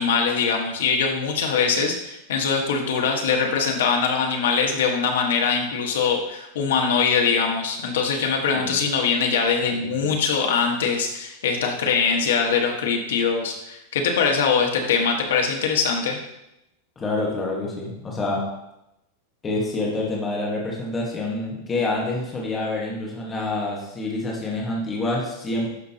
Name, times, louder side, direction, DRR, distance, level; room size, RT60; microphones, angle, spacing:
voice 1, 0.0-16.2, left 5 dB, 85° left, 2 dB, 1.4 m, -22 dB
voice 2, 9.7-10.1 17.0-18.5 19.4-25.7, left 2 dB, 15° left, -3 dB, 1.4 m, -27 dB
11.5 x 5.2 x 2.9 m, 0.87 s
supercardioid pair, 155°, 0 cm